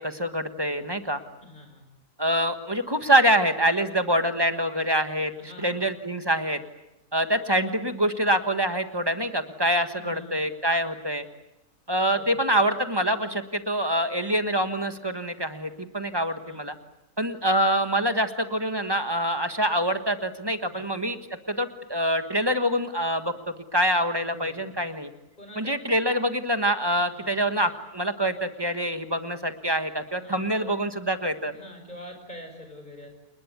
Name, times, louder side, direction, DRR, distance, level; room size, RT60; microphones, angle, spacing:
voice 1, 0.0-1.2 2.2-5.3 5.6-6.6 7.1-11.2 11.9-16.7 17.2-21.2 21.5-25.1 25.6-31.5, right 1 dB, 15° right, 8 dB, 1.4 m, -25 dB
voice 2, 1.4-1.8 5.4-5.8 9.9-10.4 12.0-12.4 16.4-16.7 20.7-20.9 24.2-24.6 25.4-25.7 27.2-27.4 30.2-30.7 31.5-33.1, left 1 dB, 30° left, 5 dB, 5.9 m, -45 dB
29.0 x 20.5 x 8.3 m, 0.93 s
omnidirectional pair, 1.6 m